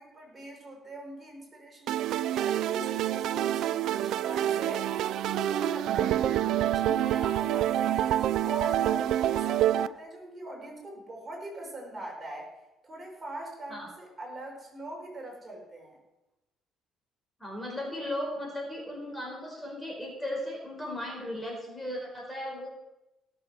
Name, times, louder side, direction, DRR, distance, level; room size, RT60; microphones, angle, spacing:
voice 1, 0.0-4.9 5.3-8.1 8.4-12.5 12.8-16.0, right 1 dB, 25° right, -1 dB, 5.4 m, -41 dB
sound 1, 1.9-9.9, right 12 dB, 70° right, 0.5 m, -27 dB
voice 2, 17.4-22.7, left 1 dB, 10° left, -1 dB, 4.6 m, -36 dB
17.5 x 7.7 x 6.5 m, 0.98 s
cardioid pair, 100°, 0 cm